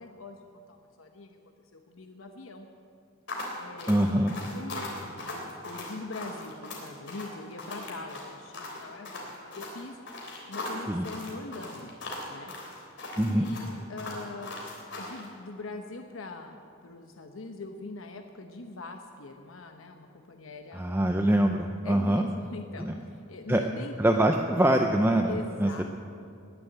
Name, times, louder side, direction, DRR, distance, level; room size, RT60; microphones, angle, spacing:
voice 1, 0.0-2.7 3.6-10.0 10.5-12.0 12.3-12.5 13.2-14.6 15.0-20.9 21.8-23.9 25.3-25.8, left 3 dB, 85° left, 5 dB, 1.0 m, -42 dB
sound 1, 3.3-15.3, left 2 dB, 60° left, 3.4 m, -39 dB
voice 2, 3.9-4.4 10.9-11.1 13.2-13.5 20.7-22.3 22.8-22.9 23.5-23.6 24.0-25.8, right 1 dB, 10° right, 4 dB, 0.5 m, -24 dB
20.5 x 7.1 x 9.0 m, 2.5 s
head